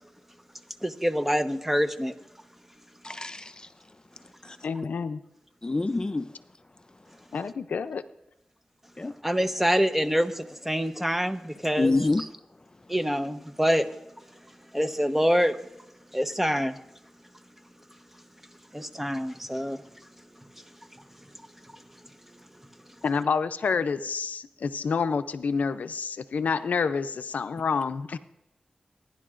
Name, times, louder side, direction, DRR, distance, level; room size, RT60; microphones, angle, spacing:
voice 1, 0.8-2.1 9.2-12.3 12.9-13.9 14.7-15.6 16.1-16.8 18.7-19.8, equal, 10° right, 0.9 m, -26 dB
voice 2, 3.0-3.5 5.6-6.3 9.0-9.1 11.8-12.2, left 2 dB, 30° left, 0.4 m, -26 dB
voice 3, 4.6-5.2 7.3-8.0 23.0-28.2, left 5 dB, 90° left, 0.5 m, -28 dB
26.0 x 11.0 x 2.5 m
cardioid pair, 45°, 3 cm